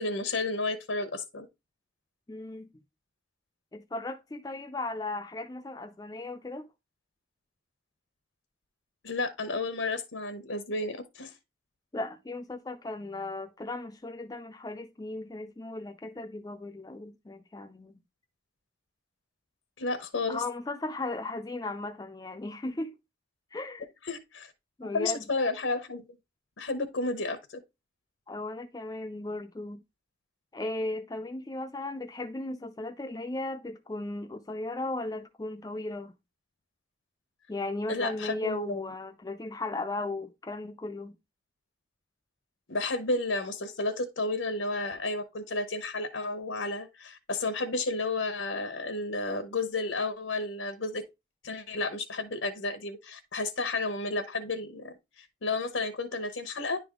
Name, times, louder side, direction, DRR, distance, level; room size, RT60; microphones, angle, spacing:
voice 1, 0.0-1.5 9.0-11.3 19.8-20.4 24.1-24.5 24.8-26.0 26.6-27.4 37.9-38.9 42.7-51.0 51.4-56.8, left 3 dB, 90° left, 0.9 m, -32 dB
voice 2, 2.3-2.7 3.7-6.7 11.9-17.9 20.3-22.9 23.5-23.9 24.8-25.2 28.3-29.8 30.5-36.1 37.5-41.1, left 2 dB, 20° left, 0.4 m, -36 dB
10.0 x 3.5 x 3.6 m
head